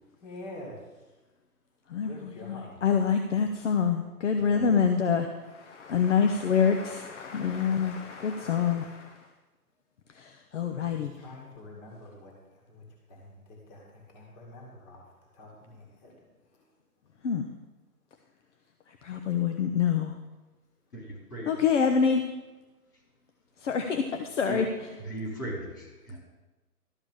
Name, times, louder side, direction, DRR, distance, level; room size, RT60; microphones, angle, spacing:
voice 1, 0.2-0.8 2.0-2.8 4.3-4.7 10.7-15.0 15.3-16.2 16.5-16.7, left 2 dB, 25° left, -1 dB, 2.1 m, -47 dB
voice 2, 1.9-9.2 10.2-11.1 17.2-17.4 19.0-20.1 21.5-22.2 23.6-24.7, left 6 dB, 50° left, 5 dB, 0.9 m, -26 dB
voice 3, 20.9-21.6 24.5-24.6 24.9-26.2, equal, 75° left, -1 dB, 4.5 m, -37 dB
12.5 x 5.1 x 7.3 m, 1.1 s
hypercardioid pair, 145°, 47 cm